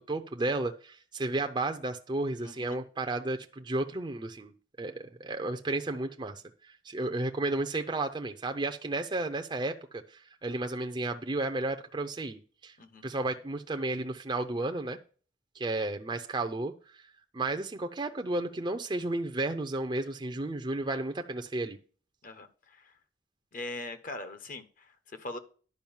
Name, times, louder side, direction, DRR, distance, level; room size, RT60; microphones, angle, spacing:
voice 1, 0.0-4.5 4.8-12.8 13.0-15.0 15.5-16.7 17.3-21.8, right 2 dB, 25° right, 5 dB, 0.5 m, -33 dB
voice 2, 2.4-2.8 12.8-13.0 22.2-22.9 23.5-25.4, left 2 dB, 45° left, 10 dB, 1.0 m, -42 dB
10.5 x 5.0 x 7.2 m, 0.40 s
head